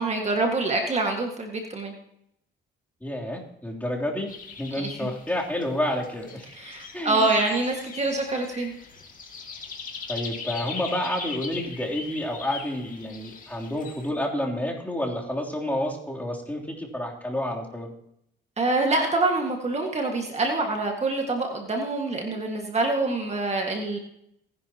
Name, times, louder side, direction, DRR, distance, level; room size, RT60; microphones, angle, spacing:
voice 1, 0.0-1.9 4.8-4.9 6.5-8.8 18.6-24.0, right 2 dB, 35° right, 2 dB, 1.9 m, -26 dB
voice 2, 3.0-4.3 4.6-6.4 6.9-7.4 10.1-17.9, left 1 dB, 10° left, -2 dB, 3.3 m, -29 dB
sound 1, 4.3-14.1, left 5 dB, 45° left, 2.4 m, -40 dB
19.0 x 11.0 x 3.0 m, 0.76 s
cardioid pair, 90°, 20 cm